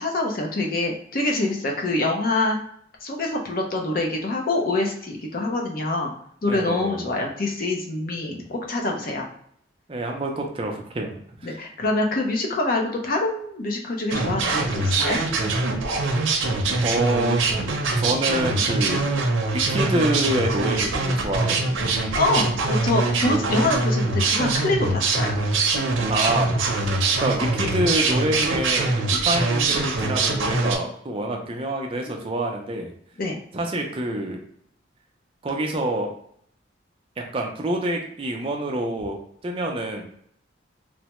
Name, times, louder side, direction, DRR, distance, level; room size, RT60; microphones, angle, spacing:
voice 1, 0.0-2.6 3.0-6.1 6.4-9.2 11.4-15.2 22.1-25.3 32.1-32.3 33.2-33.4, left 2 dB, 50° left, 1 dB, 0.6 m, -25 dB
voice 2, 6.5-7.0 8.3-8.4 9.9-11.1 11.4-11.6 16.8-17.4 17.9-19.1 19.7-21.8 26.1-26.5 27.2-32.9 33.5-34.4 35.4-36.1 37.3-40.0, right 1 dB, 30° right, 2 dB, 0.4 m, -26 dB
sound 1, 14.1-30.8, right 3 dB, 85° right, 0.6 m, -23 dB
3.2 x 2.0 x 2.9 m, 0.67 s
head